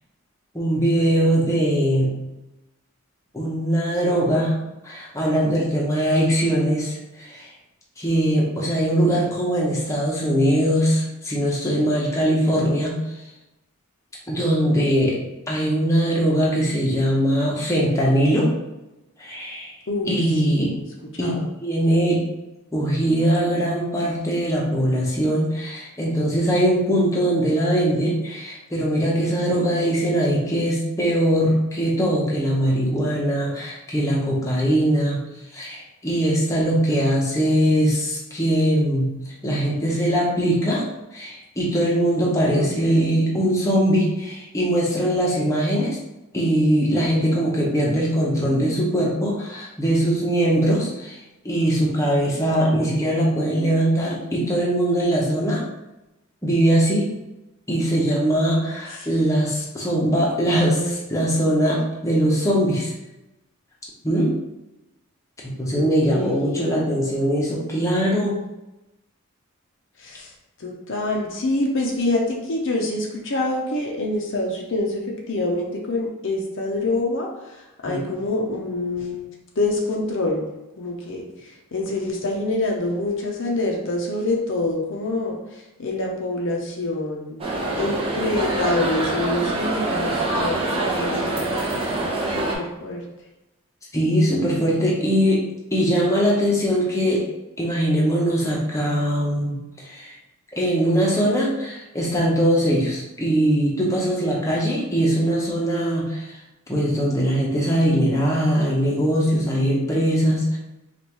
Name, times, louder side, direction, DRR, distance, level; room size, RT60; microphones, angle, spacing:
voice 1, 0.5-2.1 3.3-4.6 4.8-7.5 8.0-13.0 14.3-15.2 15.5-18.5 19.2-19.7 20.1-20.7 21.2-22.3 22.7-35.2 35.5-46.0 46.3-55.6 56.4-57.1 57.7-62.9 64.0-64.4 65.4-68.4 77.9-78.0 93.9-97.3 97.6-100.1 100.5-106.4 106.7-110.6, equal, 15° left, -4 dB, 0.9 m, -21 dB
voice 2, 20.4-20.8 21.1-21.5 42.5-42.9 58.9-59.1 60.8-61.0 65.7-67.0 70.0-70.3 70.6-79.2 79.6-80.5 80.8-91.4 92.3-93.0, left 2 dB, 60° left, 0 dB, 0.7 m, -26 dB
sound 1, 87.4-92.5, right 2 dB, 25° right, 0.8 m, -25 dB
5.4 x 2.5 x 3.0 m, 0.95 s
head